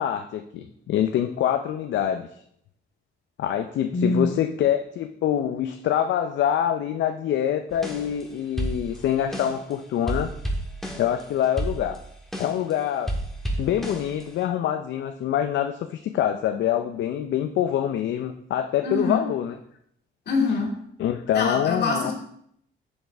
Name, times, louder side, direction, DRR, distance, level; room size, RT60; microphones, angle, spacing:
voice 1, 0.0-2.3 3.4-10.3 11.0-12.0 12.4-13.1 13.6-19.6 21.0-22.1, left 10 dB, 70° left, 7 dB, 0.5 m, -25 dB
voice 2, 3.9-4.3 18.8-19.2 20.3-20.7 21.3-22.1, left 3 dB, 55° left, -1 dB, 2.4 m, -24 dB
sound 1, 7.7-8.3 8.6-9.7 10.1-12.7 13.1-14.4, right 1 dB, ahead, 1.6 m, -31 dB
6.9 x 6.5 x 3.4 m, 0.70 s
cardioid pair, 90°, 20 cm